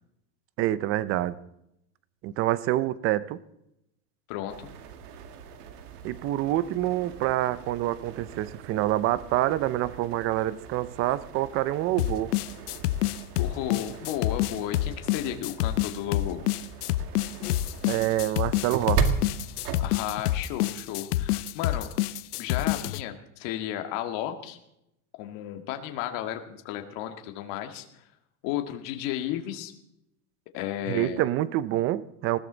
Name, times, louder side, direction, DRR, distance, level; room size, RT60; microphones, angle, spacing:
voice 1, 0.6-1.4 2.2-3.4 6.0-12.3 17.9-19.0 30.9-32.4, right 14 dB, 30° right, 17 dB, 0.6 m, -27 dB
voice 2, 4.3-4.7 13.4-16.5 19.8-21.9 22.4-24.6 25.2-27.9 28.4-29.7 30.5-31.2, left 12 dB, 45° left, 6 dB, 1.9 m, -33 dB
sound 1, 4.5-20.7, right 6 dB, 80° right, 2.1 m, -37 dB
sound 2, 12.0-23.0, left 15 dB, 85° left, 0.8 m, -27 dB
20.5 x 14.5 x 4.0 m, 0.81 s
supercardioid pair, 150°, 45 cm